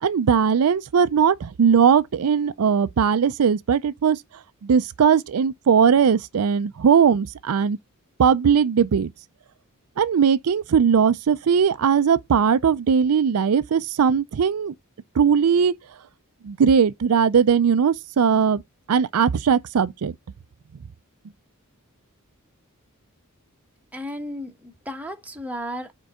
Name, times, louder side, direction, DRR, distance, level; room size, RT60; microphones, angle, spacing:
voice 1, 0.0-4.2 4.6-7.8 8.2-9.1 10.0-14.7 15.2-15.7 16.4-18.6 18.9-20.1, right 7 dB, 75° right, 0.4 m, -19 dB
voice 2, 23.9-25.9, equal, 5° right, 1.1 m, -34 dB
5.1 x 4.5 x 4.8 m
head